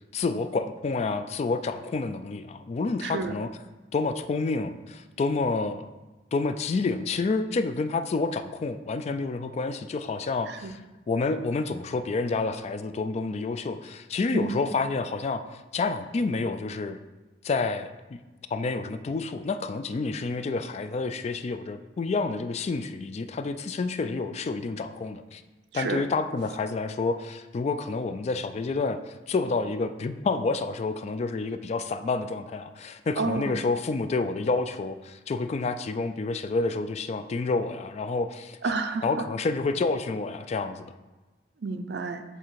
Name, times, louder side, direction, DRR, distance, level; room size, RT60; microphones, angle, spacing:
voice 1, 0.1-3.5 3.9-5.9 6.3-10.8 11.1-15.4 15.7-17.0 17.4-18.2 18.5-25.4 25.7-29.0 29.3-38.6 39.0-40.9, left 3 dB, 35° left, 10 dB, 0.3 m, -29 dB
voice 2, 3.0-3.4 10.5-10.7 14.3-14.5 25.7-26.0 33.2-33.5 38.6-39.2 41.6-42.2, right 3 dB, 65° right, 8 dB, 0.5 m, -30 dB
7.4 x 3.3 x 4.6 m, 1.2 s
head